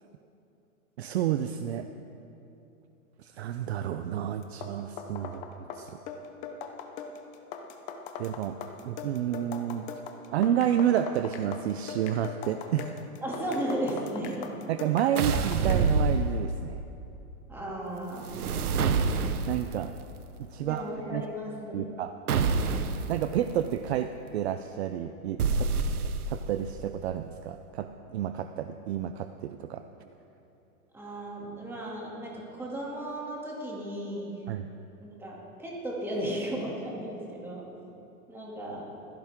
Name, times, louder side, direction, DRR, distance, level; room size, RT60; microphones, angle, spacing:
voice 1, 1.0-1.9 3.2-6.0 8.2-8.6 8.8-9.9 10.3-12.9 14.7-16.8 19.5-19.9 20.4-20.8 21.1-21.3 21.7-22.1 23.1-25.7 26.3-29.8 34.5-34.7, right 10 dB, 50° right, 9 dB, 0.6 m, -30 dB
sound 1, 4.4-16.0, left 6 dB, 15° left, 0.6 m, -41 dB
voice 2, 13.2-14.4 17.5-18.3 20.6-21.9 30.9-34.4 35.0-37.7 38.3-38.9, right 1 dB, 5° right, -4 dB, 2.5 m, -35 dB
sound 2, 15.2-16.8 18.2-19.7 22.3-23.1 25.4-26.5, right 4 dB, 90° right, 1.2 m, -27 dB
20.5 x 15.5 x 3.7 m, 2.9 s
hypercardioid pair, 150°, 44 cm